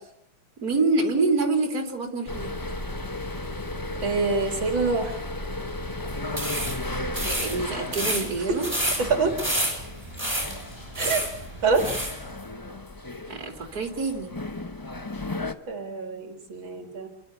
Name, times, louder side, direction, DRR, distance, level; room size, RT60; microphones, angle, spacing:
voice 1, 0.6-2.5 7.2-8.7 13.3-14.3, right 3 dB, 45° right, 5 dB, 3.4 m, -26 dB
sound 1, 2.3-15.5, left 2 dB, 20° left, 0.6 m, -35 dB
voice 2, 4.0-5.2 8.5-8.6 9.0-9.3 11.0-11.2 11.6-11.8 15.7-17.1, right 4 dB, 70° right, 5 dB, 2.9 m, -25 dB
sound 2, 6.3-12.2, right 1 dB, 15° right, 7.7 m, -30 dB
28.5 x 12.0 x 9.5 m, 0.81 s
omnidirectional pair, 2.2 m